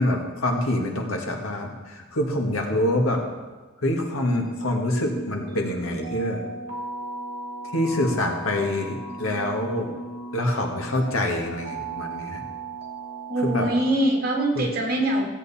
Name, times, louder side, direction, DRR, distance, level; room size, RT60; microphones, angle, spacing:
voice 1, 0.0-3.2 3.8-6.4 7.7-9.9 10.3-12.4 13.5-13.6 14.6-14.7, left 1 dB, 80° left, 2 dB, 1.8 m, -25 dB
sound 1, 4.3-13.9, right 3 dB, 30° right, 2.5 m, -36 dB
voice 2, 13.3-15.3, right 1 dB, 45° right, 0 dB, 2.0 m, -23 dB
15.5 x 8.1 x 4.2 m, 1.3 s
head